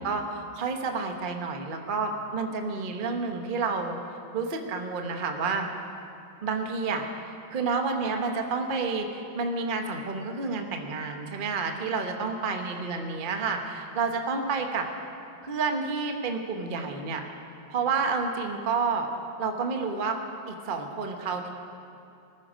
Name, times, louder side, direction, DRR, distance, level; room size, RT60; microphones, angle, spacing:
voice 1, 0.0-4.0 4.3-5.7 6.4-14.9 15.4-17.2 17.7-19.1 19.4-20.2 20.5-21.5, right 4 dB, 35° right, 3 dB, 1.0 m, -30 dB
20.0 x 14.0 x 5.1 m, 2.7 s
omnidirectional pair, 2.2 m